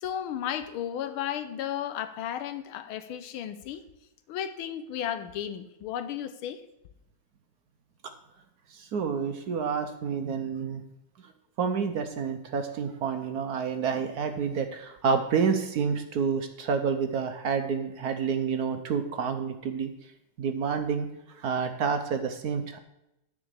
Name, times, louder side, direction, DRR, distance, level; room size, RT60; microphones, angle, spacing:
voice 1, 0.0-3.8 4.3-6.6, left 10 dB, 90° left, 11 dB, 1.6 m, -34 dB
voice 2, 8.7-10.8 11.6-19.9 20.4-22.8, right 6 dB, 60° right, 7 dB, 1.1 m, -29 dB
9.5 x 5.0 x 8.0 m, 0.89 s
omnidirectional pair, 2.2 m